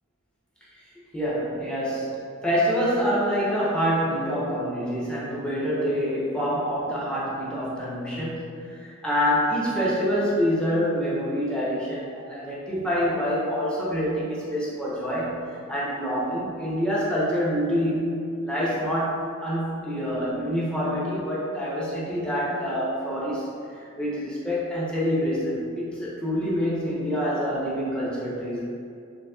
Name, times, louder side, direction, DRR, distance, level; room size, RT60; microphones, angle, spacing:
voice 1, 1.1-2.2 2.4-15.4 15.7-18.2 18.4-23.5 23.8-28.6, equal, 5° left, -8 dB, 0.7 m, -26 dB
3.9 x 3.5 x 2.3 m, 2.4 s
head